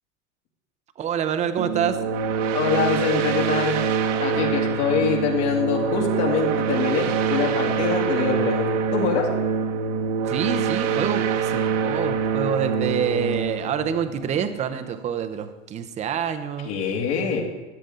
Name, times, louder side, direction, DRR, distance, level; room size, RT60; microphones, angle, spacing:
voice 1, 1.0-2.0 10.2-16.7, right 8 dB, 20° right, 8 dB, 0.6 m, -27 dB
sound 1, 1.6-14.9, right 6 dB, 70° right, 1.3 m, -25 dB
voice 2, 2.5-3.8 4.2-9.3 16.6-17.4, left 6 dB, 60° left, 0 dB, 2.6 m, -24 dB
13.5 x 9.6 x 3.8 m, 1.2 s
supercardioid pair, 130°, 39 cm